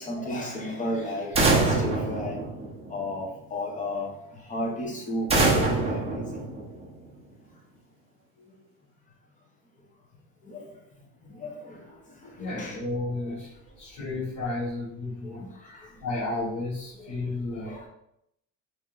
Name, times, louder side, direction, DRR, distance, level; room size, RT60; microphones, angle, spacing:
voice 1, 0.0-2.4 2.9-6.4 10.4-10.8 11.2-12.8 15.2-16.0 16.9-17.2 17.6-17.9, left 1 dB, 25° left, -1 dB, 0.8 m, -34 dB
sound 1, 1.3-3.1 5.3-7.1, right 3 dB, 20° right, 0.7 m, -25 dB
voice 2, 12.4-15.5 16.0-17.8, left 2 dB, 65° left, -7 dB, 1.0 m, -32 dB
3.0 x 2.7 x 3.7 m, 0.78 s
cardioid pair, 150°, 32 cm